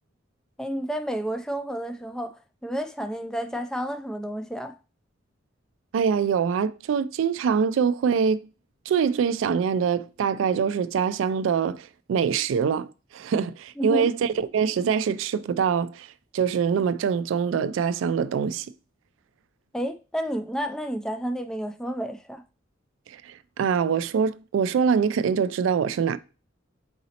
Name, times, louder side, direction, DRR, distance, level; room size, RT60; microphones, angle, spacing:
voice 1, 0.6-4.8 13.8-14.1 19.7-22.4, equal, 5° left, 0.3 m, -31 dB
voice 2, 5.9-8.5 8.9-12.9 13.1-16.1 16.3-18.7 23.6-26.2, right 6 dB, 80° right, 0.3 m, -24 dB
4.0 x 3.9 x 2.8 m
head